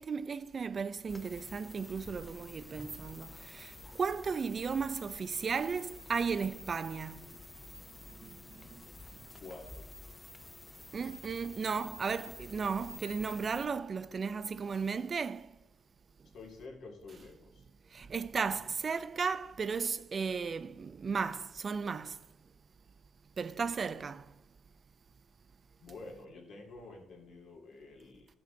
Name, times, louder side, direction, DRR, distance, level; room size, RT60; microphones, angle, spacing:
voice 1, 0.0-7.3 8.2-8.7 10.9-15.5 17.9-22.2 23.4-24.3, right 5 dB, 40° right, 0.4 m, -35 dB
sound 1, 1.1-13.7, left 2 dB, 15° left, 0.5 m, -50 dB
voice 2, 9.4-9.9 16.3-17.7 25.8-28.3, left 3 dB, 70° left, 2.3 m, -49 dB
13.0 x 5.8 x 3.8 m
cardioid pair, 90°, 0 cm